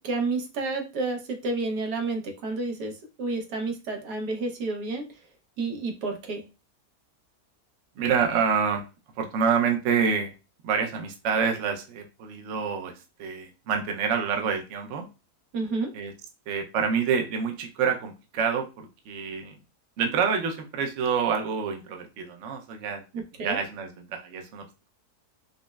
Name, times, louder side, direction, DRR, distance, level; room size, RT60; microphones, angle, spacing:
voice 1, 0.0-2.9 3.2-5.0 5.6-6.4 15.5-15.9 23.4-23.6, right 3 dB, 85° right, 4 dB, 1.3 m, -30 dB
voice 2, 8.0-8.9 9.2-10.3 10.6-12.9 13.2-15.1 15.9-16.1 16.5-19.6 20.0-23.0 23.4-24.6, right 6 dB, 65° right, 4 dB, 0.8 m, -27 dB
5.1 x 2.0 x 2.3 m, 0.29 s
omnidirectional pair, 1.7 m